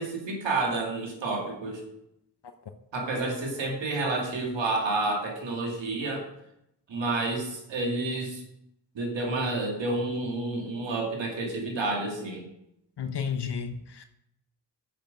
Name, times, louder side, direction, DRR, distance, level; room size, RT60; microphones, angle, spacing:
voice 1, 0.0-1.8 2.9-6.2 6.9-8.4 8.9-12.4, right 2 dB, 90° right, 0 dB, 2.4 m, -29 dB
voice 2, 13.0-14.0, left 6 dB, 65° left, 7 dB, 1.0 m, -32 dB
8.8 x 8.6 x 5.3 m, 0.79 s
cardioid pair, 45°, 43 cm